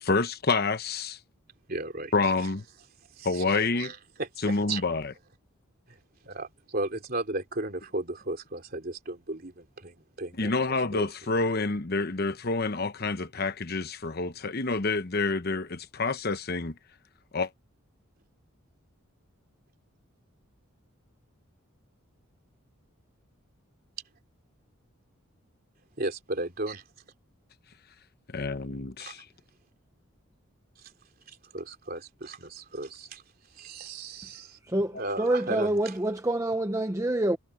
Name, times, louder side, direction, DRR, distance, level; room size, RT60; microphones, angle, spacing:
voice 1, 0.0-1.2 2.1-2.6 3.2-3.9 4.4-5.1 10.4-16.8 17.3-17.5 28.3-29.3, left 3 dB, 45° left, 1.0 m, -28 dB
voice 2, 1.7-2.5 3.1-4.8 5.9-6.0 6.2-11.3 26.0-26.9 29.0-29.1 30.8-30.9 31.3-33.2 33.5-34.6 35.0-35.9, right 2 dB, 45° right, 3.2 m, -36 dB
voice 3, 34.6-37.4, right 1 dB, 15° right, 0.8 m, -27 dB
head